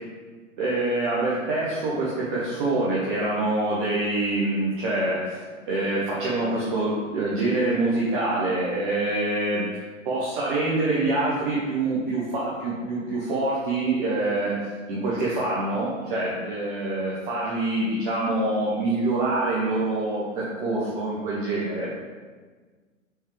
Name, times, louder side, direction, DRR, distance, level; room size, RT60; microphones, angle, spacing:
voice 1, 0.6-5.4 5.7-9.7 10.0-14.6 14.9-21.9, right 2 dB, 40° right, -6 dB, 0.9 m, -25 dB
4.5 x 3.5 x 3.2 m, 1.4 s
figure-of-eight pair, 105°, 39 cm